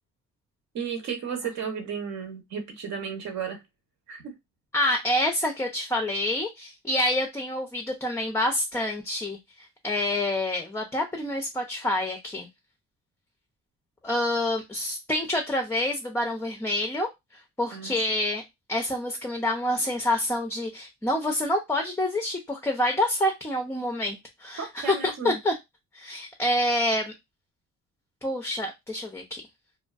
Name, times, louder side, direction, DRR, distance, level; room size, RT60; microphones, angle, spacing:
voice 1, 0.7-3.6 4.1-4.3 17.7-17.9 24.6-25.4, right 6 dB, 65° right, 0.9 m, -33 dB
voice 2, 4.7-9.4 9.8-12.5 14.0-17.1 17.6-18.4 18.7-25.5 25.9-27.1 28.2-29.4, left 1 dB, 10° left, 0.4 m, -27 dB
2.4 x 2.2 x 2.3 m
cardioid pair, 90°, 30 cm